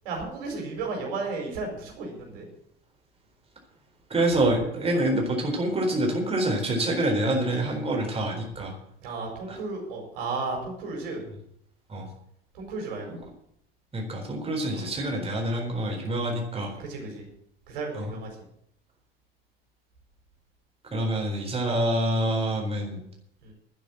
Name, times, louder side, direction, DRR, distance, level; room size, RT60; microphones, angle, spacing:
voice 1, 0.0-2.5 9.0-11.2 12.5-13.2 14.7-14.9 16.8-17.2 17.7-18.3 23.4-23.5, right 3 dB, 65° right, 1 dB, 5.0 m, -34 dB
voice 2, 4.1-8.7 9.5-9.6 11.9-12.1 13.9-16.7 17.9-18.1 20.9-23.0, right 1 dB, 20° right, 1 dB, 4.2 m, -26 dB
12.0 x 9.8 x 7.5 m, 0.71 s
figure-of-eight pair, 70°, 29 cm